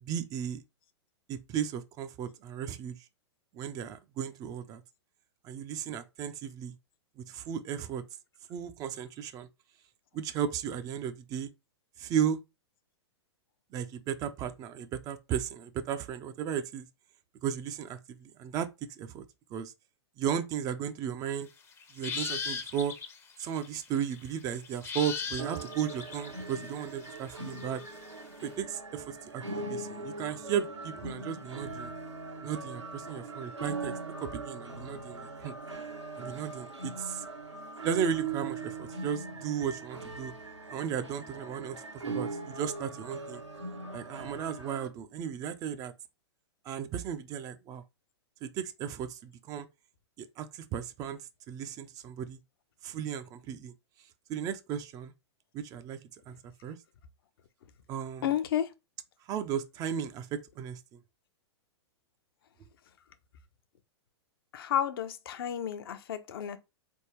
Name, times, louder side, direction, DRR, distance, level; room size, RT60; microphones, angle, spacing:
voice 1, 0.0-0.6 1.3-3.0 3.5-4.8 5.4-6.8 7.2-8.0 8.5-9.5 10.1-11.5 12.0-12.4 13.7-16.9 17.4-18.7 19.0-19.2 19.5-19.7 20.2-21.5 21.9-23.0 23.4-27.8 28.4-31.9 32.4-35.6 36.2-37.2 37.8-40.3 40.7-43.4 43.9-45.9 46.7-47.8 48.4-49.7 50.2-51.2 51.5-52.4 52.8-53.7 54.3-55.1 55.5-56.0 56.3-56.8 57.9-58.3 59.3-61.0, right 8 dB, 25° right, 0.4 m, -35 dB
sound 1, 21.7-28.2, left 6 dB, 15° left, 0.6 m, -39 dB
sound 2, 25.4-44.9, right 3 dB, 90° right, 1.1 m, -40 dB
voice 2, 58.2-58.7 64.5-66.6, left 10 dB, 55° left, 0.6 m, -31 dB
4.0 x 3.5 x 3.1 m
figure-of-eight pair, 105°, 15 cm